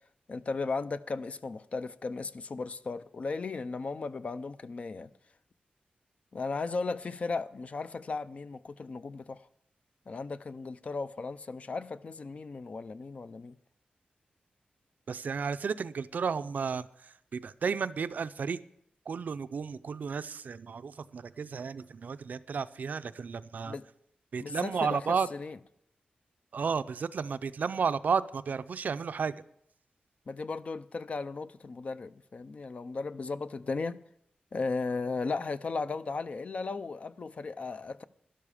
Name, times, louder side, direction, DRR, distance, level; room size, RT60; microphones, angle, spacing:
voice 1, 0.3-5.1 6.3-9.5 10.1-13.6 23.7-23.8 24.4-25.6 30.3-34.0 34.5-38.0, left 4 dB, 45° left, 0.5 m, -36 dB
voice 2, 15.1-18.6 19.1-23.8 24.3-25.3 26.5-29.4, right 6 dB, 65° right, 0.4 m, -33 dB
12.5 x 11.5 x 4.9 m
wide cardioid pair, 155°, 3 cm